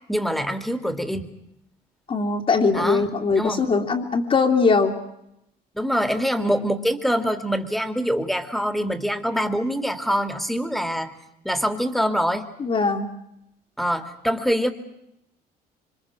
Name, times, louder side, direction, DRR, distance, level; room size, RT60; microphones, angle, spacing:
voice 1, 0.1-1.3 2.7-3.7 5.7-11.1 11.4-12.5 13.8-14.7, equal, ahead, 8 dB, 2.7 m, -24 dB
voice 2, 2.1-4.9 12.6-13.1, left 4 dB, 35° left, -3 dB, 2.8 m, -21 dB
27.5 x 25.0 x 6.2 m, 0.81 s
cardioid pair, 110°, 17 cm